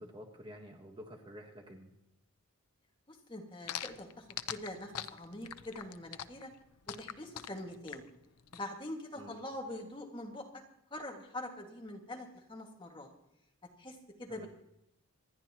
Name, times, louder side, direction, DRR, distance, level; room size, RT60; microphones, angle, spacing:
voice 1, 0.0-1.9 9.1-9.3 14.3-14.5, equal, 20° right, 2 dB, 1.4 m, -50 dB
voice 2, 3.1-6.5 6.9-8.0 8.5-10.5 10.9-13.1 13.8-14.5, left 1 dB, 20° left, 0 dB, 1.9 m, -44 dB
sound 1, 3.7-8.6, left 10 dB, 85° left, 0.6 m, -42 dB
26.5 x 10.5 x 3.0 m, 0.82 s
head